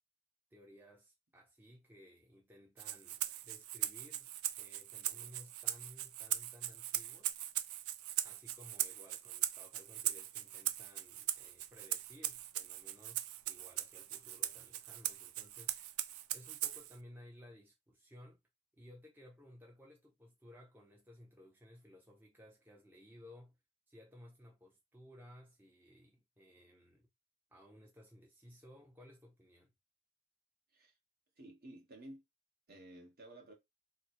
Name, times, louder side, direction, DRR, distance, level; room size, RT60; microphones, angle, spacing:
voice 1, 0.5-4.3 4.6-7.4 8.2-18.4 18.7-23.6 23.9-27.1 27.5-29.7, equal, 10° right, 0.6 m, -58 dB
Rattle (instrument), 2.8-17.0, right 13 dB, 90° right, 0.4 m, -40 dB
voice 2, 31.4-32.2 32.7-33.5, right 1 dB, 45° right, 1.3 m, -53 dB
3.2 x 2.1 x 4.3 m
head